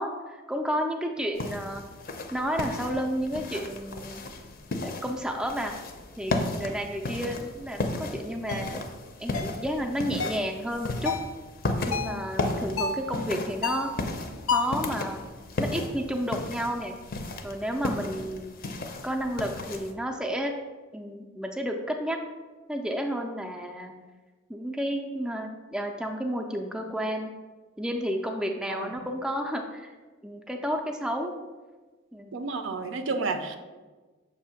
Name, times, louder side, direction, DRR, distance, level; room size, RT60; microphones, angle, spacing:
voice 1, 0.0-1.8 2.3-4.2 4.8-5.8 6.2-8.8 9.2-11.1 11.9-13.9 14.5-15.2 15.6-17.0 17.4-18.5 19.0-20.5 20.9-22.2 22.7-23.9 24.5-27.3 27.8-29.9 30.2-31.4 32.1-32.4, equal, 5° right, 2 dB, 0.4 m, -31 dB
sound 1, 1.4-19.9, left 2 dB, 45° left, 0.5 m, -35 dB
sound 2, 8.5-8.7 9.3-9.6 10.2-10.5 11.1-11.3 11.9-12.2 12.8-13.1 13.6-14.0 14.5-14.8, left 5 dB, 90° left, 0.5 m, -30 dB
voice 2, 32.3-33.6, right 3 dB, 65° right, 8 dB, 0.5 m, -31 dB
6.6 x 2.7 x 5.7 m, 1.3 s
head